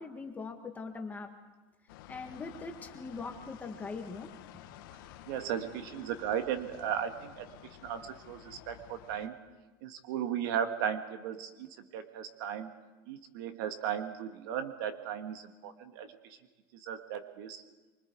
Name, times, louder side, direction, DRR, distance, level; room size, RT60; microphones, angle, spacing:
voice 1, 0.0-1.3 2.1-4.6, left 4 dB, 15° left, 4 dB, 1.8 m, -42 dB
sound 1, 1.9-9.3, left 12 dB, 75° left, 1.7 m, -52 dB
voice 2, 5.3-9.4 9.8-12.7 13.1-16.4 16.8-17.6, right 9 dB, 65° right, 8 dB, 1.8 m, -36 dB
25.0 x 24.5 x 4.7 m, 1.2 s
supercardioid pair, 145°, 12 cm